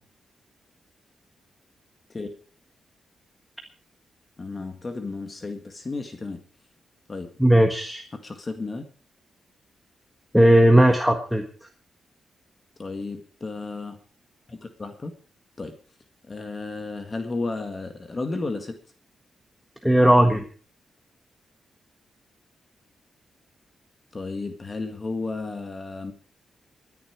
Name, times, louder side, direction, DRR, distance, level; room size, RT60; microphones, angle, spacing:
voice 1, 4.4-6.4 7.1-7.3 8.2-8.8 12.8-14.0 14.5-15.1 15.6-15.7 16.3-18.8 24.1-26.1, left 3 dB, 30° left, 6 dB, 1.8 m, -33 dB
voice 2, 7.4-8.0 10.3-11.5 19.8-20.4, right 1 dB, ahead, 3 dB, 1.5 m, -17 dB
21.5 x 10.5 x 4.7 m, 0.41 s
cardioid pair, 110°, 0 cm